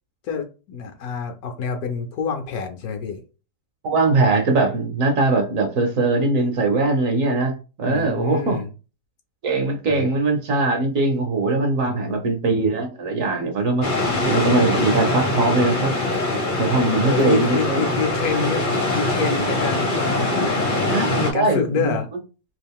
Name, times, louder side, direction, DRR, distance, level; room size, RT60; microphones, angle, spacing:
voice 1, 0.2-3.2 7.9-8.7 9.9-10.1 11.9-12.3 17.0-20.6 21.2-22.1, left 5 dB, 70° left, 5 dB, 1.0 m, -27 dB
voice 2, 3.8-7.5 7.8-8.6 9.4-13.9 14.2-15.9 16.6-17.9 18.3-18.4 20.9-22.0, right 3 dB, 60° right, 3 dB, 1.0 m, -21 dB
sound 1, 13.8-21.3, left 2 dB, 45° left, 0.7 m, -23 dB
3.0 x 2.4 x 3.6 m, 0.33 s
omnidirectional pair, 1.8 m